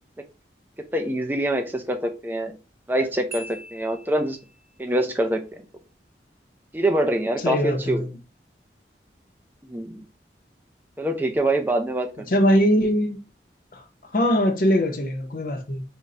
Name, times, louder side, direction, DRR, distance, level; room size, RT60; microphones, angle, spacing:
voice 1, 0.8-2.6 2.9-4.4 4.8-5.6 6.7-8.0 9.7-10.0 11.0-12.3, right 1 dB, 10° right, 0.5 m, -25 dB
Marimba xylophone, 3.3-4.7, right 1 dB, 50° right, 0.8 m, -42 dB
voice 2, 7.4-8.1 12.3-13.2 13.7-13.8 14.1-15.8, equal, 50° left, 0.7 m, -21 dB
3.7 x 2.2 x 4.1 m
head